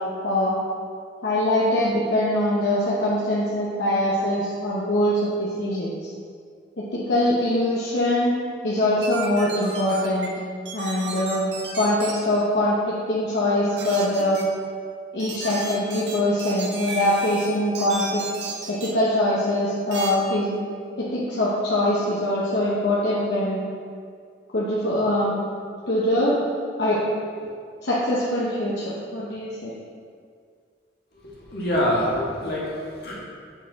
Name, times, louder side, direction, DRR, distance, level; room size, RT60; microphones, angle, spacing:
voice 1, 0.2-0.5 1.2-6.1 6.8-8.3 8.6-10.3 10.7-11.5 11.7-14.4 15.1-18.2 18.7-20.5 21.0-23.6 24.5-25.4 25.9-26.4 26.8-27.0 27.8-29.7, left 1 dB, 75° left, -7 dB, 0.9 m, -23 dB
sound 1, 9.0-10.3 10.7-12.1 13.8-14.4 15.2-17.5 17.7-18.9 19.9-20.1, right 4 dB, 75° right, 0.9 m, -34 dB
voice 2, 31.5-33.1, equal, 55° left, -5 dB, 1.5 m, -25 dB
7.2 x 4.3 x 4.0 m, 2.1 s
head